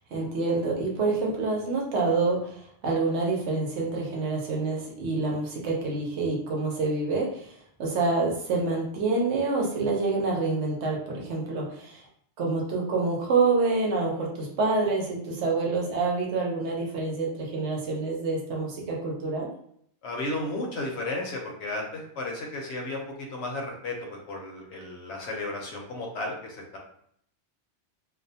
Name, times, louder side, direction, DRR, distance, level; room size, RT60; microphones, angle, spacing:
voice 1, 0.1-7.5 7.8-12.0 12.4-19.5, right 3 dB, 80° right, -1 dB, 1.0 m, -27 dB
voice 2, 20.0-23.0 23.3-26.8, left 2 dB, 80° left, 0 dB, 1.0 m, -33 dB
2.6 x 2.1 x 2.7 m, 0.68 s
omnidirectional pair, 1.2 m